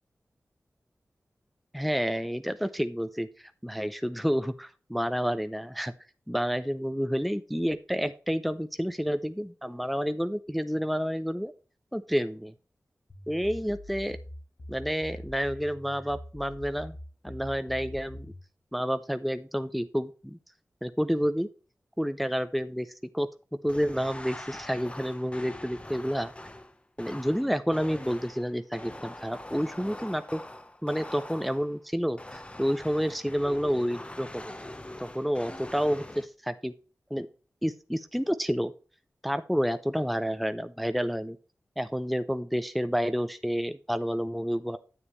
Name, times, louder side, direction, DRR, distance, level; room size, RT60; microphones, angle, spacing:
voice 1, 1.7-5.9 6.3-11.5 11.9-12.5 13.3-14.2 14.7-16.9 17.2-18.3 18.7-20.4 20.8-21.5 22.0-23.3 23.6-26.3 27.0-30.4 30.8-34.5 35.0-36.7 37.1-37.3 37.6-38.7 39.2-41.4 41.8-44.8, equal, ahead, 10 dB, 0.5 m, -29 dB
sound 1, 13.1-18.5, left 1 dB, 55° left, 4.7 m, -44 dB
sound 2, 23.7-31.8 32.2-36.3, left 1 dB, 20° left, 0.9 m, -43 dB
9.8 x 7.3 x 3.2 m, 0.37 s
wide cardioid pair, 60°, 6 cm